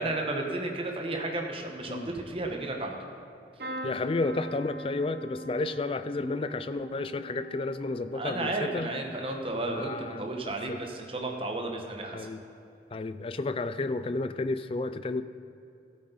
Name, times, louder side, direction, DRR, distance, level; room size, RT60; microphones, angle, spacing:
voice 1, 0.0-3.0 8.1-12.3, right 2 dB, 30° right, 2 dB, 1.1 m, -33 dB
sound 1, 3.6-11.4 11.9-12.4 13.7-13.9 14.1-14.2, right 1 dB, 60° right, 1.2 m, -44 dB
voice 2, 3.8-8.9 9.7-10.2 10.7-10.8 12.1-12.4 12.9-15.2, left 3 dB, 30° left, 12 dB, 0.4 m, -32 dB
14.5 x 8.6 x 4.0 m, 2.6 s
head